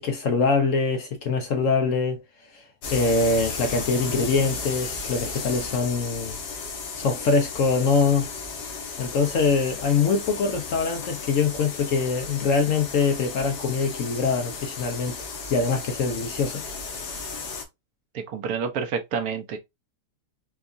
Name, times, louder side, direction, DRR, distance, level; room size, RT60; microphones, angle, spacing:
voice 1, 0.0-2.2 2.9-6.4 7.0-8.3 9.0-15.2 15.5-16.6, left 4 dB, 65° left, 0.9 m, -23 dB
sound 1, 2.8-17.6, left 4 dB, 80° left, 1.4 m, -34 dB
voice 2, 18.1-19.6, right 6 dB, 70° right, 1.0 m, -29 dB
4.5 x 2.3 x 2.6 m
omnidirectional pair, 1.7 m